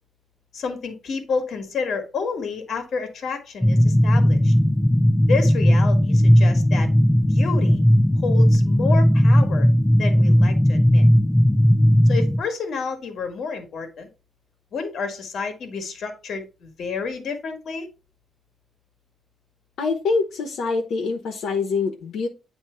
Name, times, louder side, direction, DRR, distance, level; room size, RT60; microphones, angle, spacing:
voice 1, 0.5-4.5 5.3-6.9 7.3-7.8 8.2-9.7 10.0-11.0 12.1-14.1 14.7-17.9, left 5 dB, 55° left, 1.6 m, -30 dB
sound 1, 3.6-12.4, equal, 5° left, 0.7 m, -17 dB
voice 2, 19.8-22.3, left 4 dB, 70° left, 1.2 m, -25 dB
9.0 x 3.1 x 4.4 m
cardioid pair, 140°, 0 cm